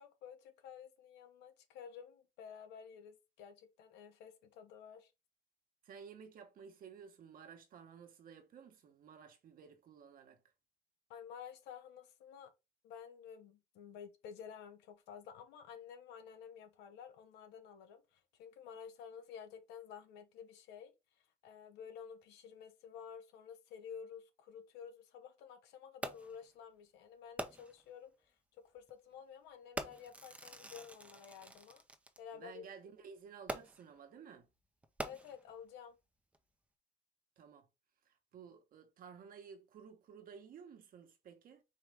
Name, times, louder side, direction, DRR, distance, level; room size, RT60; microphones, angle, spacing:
voice 1, 0.0-5.1 11.1-12.5 12.8-20.9 21.4-28.3 28.7-31.8 32.2-32.6 35.0-36.0, left 7 dB, 90° left, 1.0 m, -52 dB
voice 2, 5.8-10.4 32.3-34.5 37.4-37.7 38.0-41.6, right 6 dB, 55° right, 1.2 m, -54 dB
Fireworks, 26.0-26.5 27.4-27.9 28.8-28.9 29.8-32.2 33.5-34.0 34.8-35.6 36.3-36.4, right 1 dB, 10° right, 0.6 m, -45 dB
4.7 x 3.1 x 3.4 m
cardioid pair, 110°, 17 cm